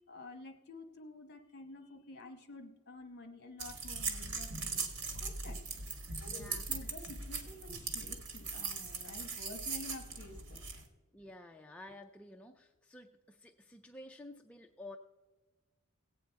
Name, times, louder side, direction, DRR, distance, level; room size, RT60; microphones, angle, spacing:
voice 1, 0.1-5.6 6.2-10.8, left 2 dB, 50° left, 6 dB, 1.1 m, -50 dB
sound 1, 3.6-10.8, right 4 dB, 85° right, 1.4 m, -40 dB
voice 2, 6.3-6.6 11.1-15.0, left 1 dB, 5° left, 2 dB, 0.3 m, -51 dB
16.5 x 8.4 x 4.5 m, 1.2 s
head